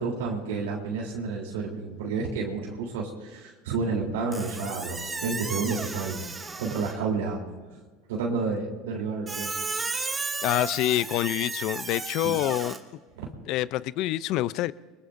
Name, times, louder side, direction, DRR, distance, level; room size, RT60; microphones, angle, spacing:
voice 1, 0.0-6.2 6.6-7.4 8.1-9.5 12.2-12.4 13.2-13.3, right 4 dB, 85° right, 3.4 m, -30 dB
Squeak, 4.3-7.1 9.3-12.8, right 3 dB, 20° right, 1.6 m, -34 dB
voice 2, 10.4-12.8 13.5-14.7, left 15 dB, 60° left, 0.5 m, -26 dB
24.0 x 20.5 x 2.6 m
hypercardioid pair, 90°, 0 cm